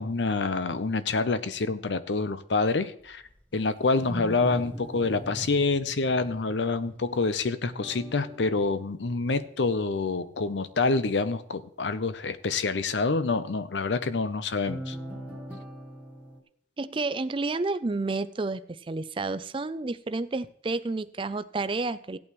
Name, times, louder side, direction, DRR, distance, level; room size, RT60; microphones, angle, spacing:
voice 1, 0.0-3.2 3.5-15.0, left 3 dB, 80° left, 13 dB, 0.7 m, -27 dB
Wild animals, 3.0-8.0, equal, 10° left, 1.0 m, -41 dB
sound 1, 7.8-10.4 14.7-16.4, equal, 5° right, 1.6 m, -42 dB
voice 2, 16.8-22.2, right 3 dB, 30° right, 14 dB, 0.4 m, -30 dB
16.0 x 8.6 x 3.1 m, 0.65 s
head